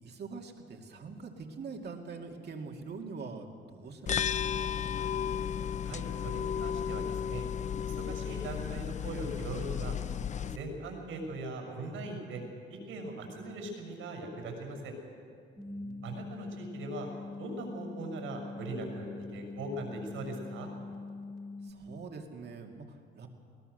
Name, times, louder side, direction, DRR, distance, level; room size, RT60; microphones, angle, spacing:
voice 1, 0.0-4.8 15.6-16.2 21.6-23.3, right 4 dB, 55° right, 3 dB, 2.4 m, -44 dB
sound 1, 4.1-10.6, left 8 dB, 35° left, 0.4 m, -34 dB
voice 2, 5.8-7.4 7.8-10.0 10.4-12.4 12.7-14.9 16.0-17.1 17.4-20.7, right 2 dB, 90° right, 2 dB, 6.4 m, -40 dB
sound 2, 15.6-21.7, left 3 dB, 5° left, 2.4 m, -43 dB
21.5 x 18.0 x 6.7 m, 2.3 s
cardioid pair, 90°, 20 cm